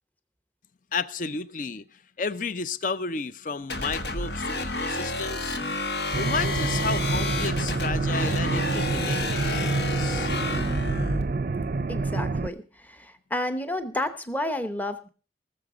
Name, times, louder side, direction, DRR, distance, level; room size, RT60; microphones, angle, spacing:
voice 1, 0.9-5.6 6.2-10.3, left 4 dB, 45° left, 0.5 m, -32 dB
sound 1, 3.7-11.2, left 2 dB, 75° left, 1.5 m, -30 dB
sound 2, 6.1-12.5, right 3 dB, 50° right, 0.5 m, -27 dB
voice 2, 11.9-15.1, left 1 dB, 10° left, 0.9 m, -31 dB
19.5 x 7.0 x 5.0 m
head